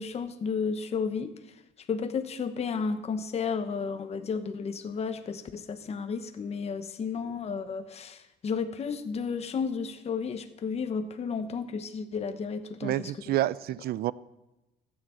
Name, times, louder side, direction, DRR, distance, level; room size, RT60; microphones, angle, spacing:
voice 1, 0.0-13.4, left 5 dB, 40° left, 8 dB, 1.1 m, -33 dB
voice 2, 12.8-14.1, right 14 dB, 65° right, 19 dB, 0.6 m, -28 dB
14.5 x 9.6 x 7.6 m, 0.99 s
cardioid pair, 110°, 17 cm